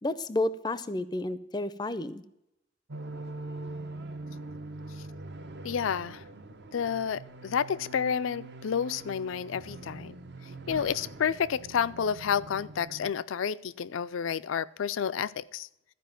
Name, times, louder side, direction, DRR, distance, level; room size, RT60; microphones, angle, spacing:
voice 1, 0.0-2.2, left 2 dB, 20° left, 15 dB, 0.5 m, -31 dB
sound 1, 2.9-13.1, right 2 dB, 60° right, 0.8 m, -43 dB
voice 2, 5.6-6.2 6.7-10.1 10.7-15.7, left 7 dB, 85° left, 18 dB, 0.4 m, -30 dB
13.5 x 5.1 x 9.0 m, 0.84 s
head